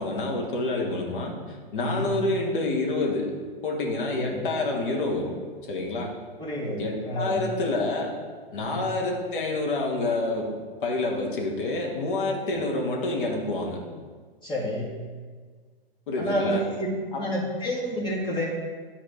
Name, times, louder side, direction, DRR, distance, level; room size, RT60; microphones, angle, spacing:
voice 1, 0.0-3.3 3.6-5.4 5.7-6.1 6.8-8.1 8.5-10.6 10.8-13.8 16.1-16.6 17.1-17.3, left 2 dB, 60° left, 0 dB, 1.9 m, -28 dB
voice 2, 1.8-2.1 4.2-4.4 6.4-7.4 8.6-8.8 14.4-14.9 16.2-16.9 17.2-18.5, equal, 15° left, -4 dB, 2.2 m, -29 dB
11.5 x 4.2 x 5.2 m, 1.5 s
hypercardioid pair, 120°, 29 cm